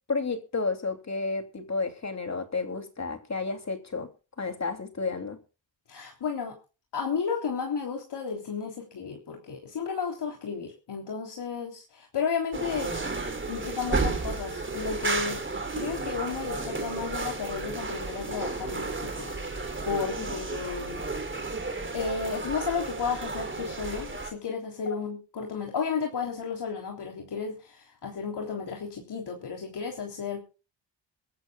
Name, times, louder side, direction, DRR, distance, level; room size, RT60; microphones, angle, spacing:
voice 1, 0.1-4.1 4.4-5.4 20.1-20.3 24.9-25.0, left 4 dB, 35° left, 2.9 m, -31 dB
voice 2, 5.9-6.5 6.9-12.9 13.5-21.0 21.9-30.4, left 6 dB, 60° left, 3.5 m, -33 dB
sound 1, 12.5-24.3, right 3 dB, 25° right, 3.2 m, -33 dB
24.0 x 13.5 x 2.4 m
cardioid pair, 85°, 46 cm